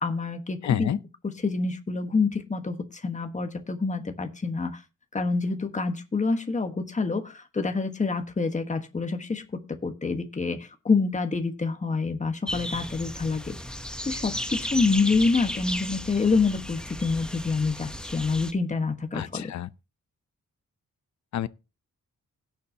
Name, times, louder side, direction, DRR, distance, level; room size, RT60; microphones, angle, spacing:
voice 1, 0.0-0.9 1.4-4.8 5.1-13.6 14.0-19.5, left 4 dB, 20° left, 1.3 m, -27 dB
voice 2, 0.6-1.0 19.1-19.7 21.3-21.5, left 10 dB, 60° left, 0.6 m, -28 dB
sound 1, 12.5-18.5, equal, 5° left, 0.9 m, -34 dB
17.0 x 7.2 x 2.8 m
wide cardioid pair, 120°, 32 cm